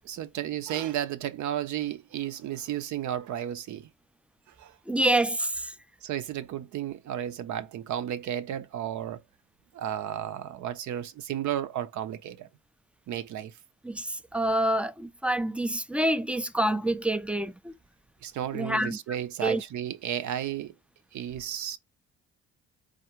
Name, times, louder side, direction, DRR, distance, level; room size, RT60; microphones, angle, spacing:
voice 1, 0.0-3.9 4.5-4.8 6.0-9.2 9.7-12.5 13.1-13.5 18.2-20.7 21.1-21.8, right 10 dB, 70° right, 0.6 m, -33 dB
voice 2, 4.9-5.7 13.8-17.7 18.5-19.0 19.4-19.6, right 1 dB, 5° right, 0.3 m, -27 dB
3.7 x 2.1 x 4.4 m
cardioid pair, 90°, 30 cm